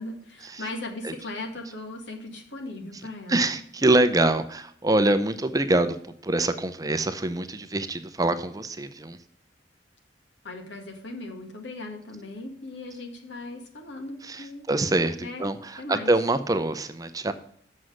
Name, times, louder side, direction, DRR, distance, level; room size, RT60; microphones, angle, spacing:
voice 1, 0.0-3.5 10.4-14.7 15.2-16.1, left 2 dB, 75° left, 3 dB, 1.8 m, -38 dB
voice 2, 3.3-5.9 6.2-9.2 14.3-17.3, right 2 dB, 20° right, 11 dB, 0.6 m, -25 dB
7.7 x 6.3 x 6.4 m, 0.65 s
head